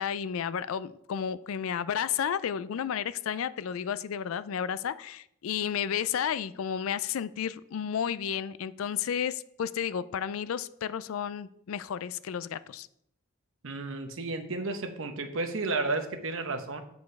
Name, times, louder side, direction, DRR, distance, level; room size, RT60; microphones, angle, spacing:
voice 1, 0.0-12.9, left 8 dB, 80° left, 16 dB, 0.4 m, -32 dB
voice 2, 13.6-16.8, right 3 dB, 70° right, 7 dB, 0.9 m, -32 dB
8.3 x 5.2 x 4.7 m, 0.75 s
head